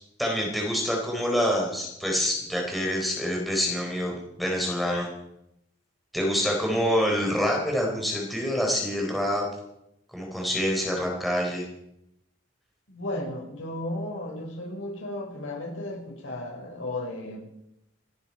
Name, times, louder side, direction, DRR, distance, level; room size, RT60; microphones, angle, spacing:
voice 1, 0.2-5.1 6.1-9.4 10.1-11.7, equal, ahead, 0 dB, 3.9 m, -26 dB
voice 2, 12.9-17.4, left 1 dB, 80° left, 0 dB, 5.5 m, -34 dB
26.5 x 10.5 x 4.8 m, 0.81 s
head